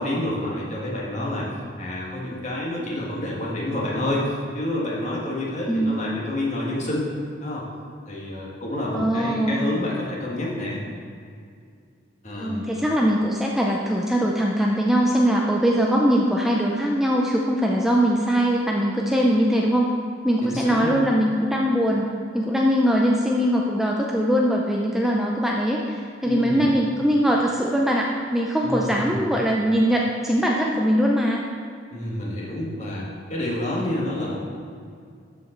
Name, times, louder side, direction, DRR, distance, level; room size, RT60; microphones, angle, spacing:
voice 1, 0.0-1.5 1.8-7.1 7.4-7.7 8.1-10.8 12.2-12.6 20.4-20.9 26.2-26.6 28.6-29.2 31.9-34.4, left 1 dB, 40° left, -4 dB, 1.7 m, -28 dB
voice 2, 5.7-6.1 8.9-9.7 12.4-19.9 20.2-22.0 22.3-31.5, equal, ahead, -2 dB, 0.4 m, -21 dB
13.0 x 5.1 x 3.9 m, 2.3 s
head